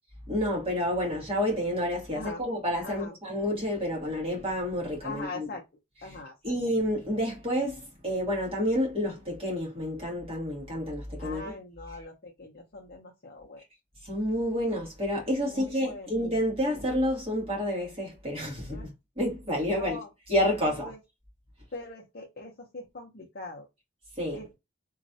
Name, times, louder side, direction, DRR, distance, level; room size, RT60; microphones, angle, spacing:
voice 1, 0.3-5.5 6.0-6.2 6.4-11.5 14.0-20.0 20.3-20.9 24.2-24.4, equal, 30° right, 1.6 m, -29 dB
voice 2, 2.1-2.4 2.8-3.1 5.0-5.6 6.0-6.3 11.2-13.6 15.4-16.2 18.7-18.9 19.7-20.1 20.6-21.0 21.7-23.7 24.3-24.6, left 3 dB, 45° left, 0.7 m, -41 dB
3.0 x 2.4 x 2.7 m
head